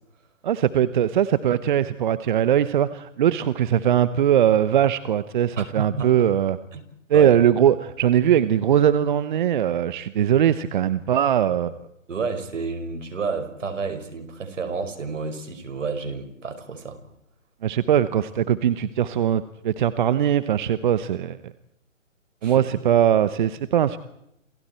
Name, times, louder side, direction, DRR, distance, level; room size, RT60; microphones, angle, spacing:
voice 1, 0.4-6.6 7.1-11.8 17.6-21.5 22.4-24.0, right 10 dB, 40° right, 14 dB, 1.0 m, -20 dB
voice 2, 5.6-6.1 6.7-6.8 7.1-7.4 12.1-17.0 22.4-22.6, right 4 dB, 70° right, 7 dB, 5.4 m, -30 dB
30.0 x 28.5 x 4.5 m, 0.79 s
hypercardioid pair, 145°, 39 cm